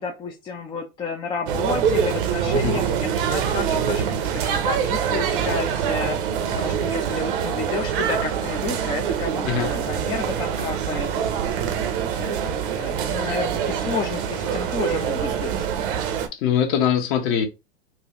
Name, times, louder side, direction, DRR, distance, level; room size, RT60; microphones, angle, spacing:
voice 1, 0.0-4.0 4.4-6.2 6.5-11.1 12.0-15.7, left 5 dB, 15° left, 0.4 m, -31 dB
sound 1, 1.5-16.3, right 8 dB, 50° right, 0.8 m, -25 dB
voice 2, 16.4-17.5, left 8 dB, 40° left, 1.0 m, -22 dB
3.9 x 2.3 x 2.9 m
hypercardioid pair, 105°, 33 cm